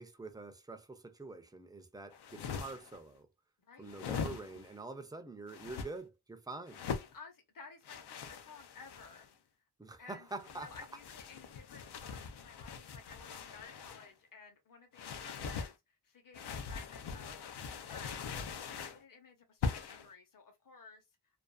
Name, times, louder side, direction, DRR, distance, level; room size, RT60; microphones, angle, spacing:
voice 1, 0.0-3.3 3.8-6.8 9.8-10.8, right 3 dB, 10° right, 0.3 m, -46 dB
sound 1, 2.1-3.0 3.9-4.7 5.5-5.9 6.7-7.1 7.8-9.3 10.3-14.1 14.9-15.7 16.3-19.0 19.6-20.1, left 5 dB, 85° left, 0.5 m, -42 dB
voice 2, 3.6-4.0 6.9-9.3 10.0-17.5 17.9-18.3 18.7-21.0, left 4 dB, 55° left, 0.8 m, -55 dB
2.5 x 2.3 x 2.2 m
wide cardioid pair, 135°, 39 cm